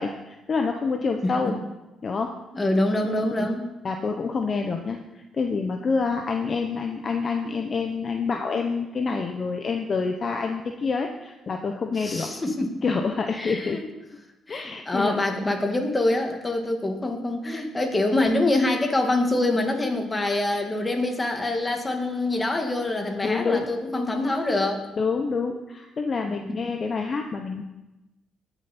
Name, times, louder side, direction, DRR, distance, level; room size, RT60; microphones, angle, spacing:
voice 1, 0.0-1.5 2.0-2.3 3.0-3.5 3.8-5.0 5.3-12.3 12.8-13.8 14.5-15.2 23.2-23.7 24.9-27.6, left 4 dB, 40° left, 4 dB, 0.9 m, -27 dB
voice 2, 2.5-3.6 12.0-12.7 13.4-13.8 14.5-24.8, left 2 dB, 20° left, 3 dB, 2.0 m, -25 dB
18.5 x 7.1 x 4.3 m, 1.0 s
cardioid pair, 90°, 0 cm